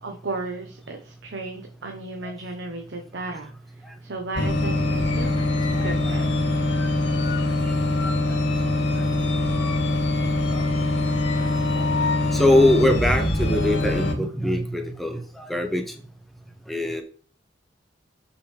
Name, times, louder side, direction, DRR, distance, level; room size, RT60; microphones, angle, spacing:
voice 1, 0.0-5.4 5.8-6.5, right 2 dB, 70° right, 3 dB, 1.0 m, -35 dB
sound 1, 4.4-14.1, left 2 dB, 85° left, 2.0 m, -23 dB
voice 2, 5.7-6.1 8.0-8.1 8.9-9.0 10.5-10.6 11.7-11.9 12.3-15.8 16.7-17.0, left 1 dB, ahead, 4 dB, 0.7 m, -23 dB
6.4 x 5.8 x 3.3 m, 0.41 s
head